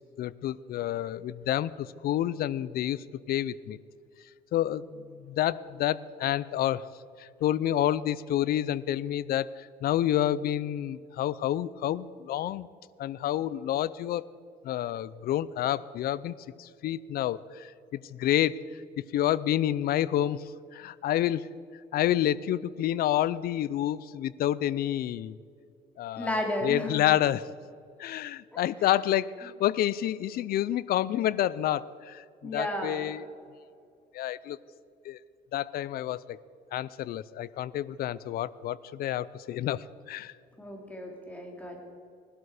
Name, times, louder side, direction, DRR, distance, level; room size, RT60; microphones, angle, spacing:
voice 1, 0.2-3.8 4.5-6.8 7.2-12.7 13.0-14.3 14.6-18.6 19.1-20.4 20.7-21.5 21.9-25.4 26.0-26.3 26.6-27.5 28.0-33.2 34.1-34.6 35.0-35.2 35.5-36.4 36.7-40.3, left 12 dB, 65° left, 19 dB, 0.6 m, -29 dB
voice 2, 26.2-27.0 32.4-33.1 40.6-41.8, left 1 dB, 10° left, 0 dB, 3.4 m, -33 dB
19.5 x 12.5 x 5.0 m, 2.4 s
cardioid pair, 110°, 17 cm